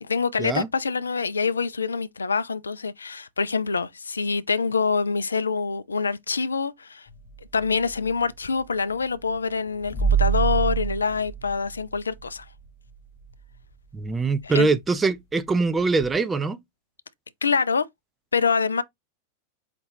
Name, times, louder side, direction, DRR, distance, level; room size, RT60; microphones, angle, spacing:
voice 1, 0.0-7.1 7.5-12.4 14.4-14.7 17.4-17.9 18.3-18.8, left 5 dB, 75° left, 0.3 m, -25 dB
Deep Hit, 7.1-8.3 9.8-12.4 12.9-13.0 16.0-16.2, right 8 dB, 50° left, 1.0 m, -26 dB
voice 2, 13.9-16.6, right 4 dB, 15° right, 0.4 m, -23 dB
4.9 x 2.3 x 3.3 m
figure-of-eight pair, 90°, 0 cm